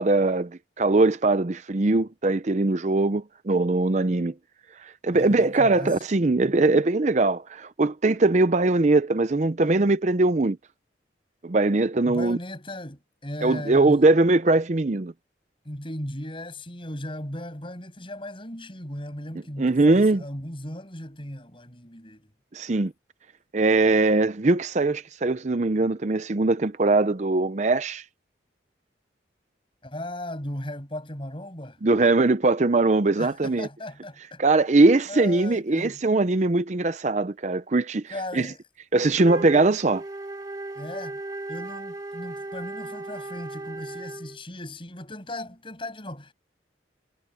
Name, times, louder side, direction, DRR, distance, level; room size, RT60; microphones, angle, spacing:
voice 1, 0.0-4.3 4.8-10.6 11.4-12.4 13.4-15.1 19.6-20.2 22.5-22.9 23.5-28.0 31.8-33.7 34.4-38.5 38.9-40.0, right 2 dB, 40° right, 0.6 m, -21 dB
voice 2, 5.1-6.0 12.0-14.0 15.6-22.3 29.8-31.8 33.2-34.4 35.1-36.0 38.1-38.6 40.7-41.2 41.5-46.3, left 1 dB, 30° left, 7.8 m, -37 dB
Wind instrument woodwind instrument, 39.2-44.4, right 2 dB, 20° right, 2.0 m, -36 dB
head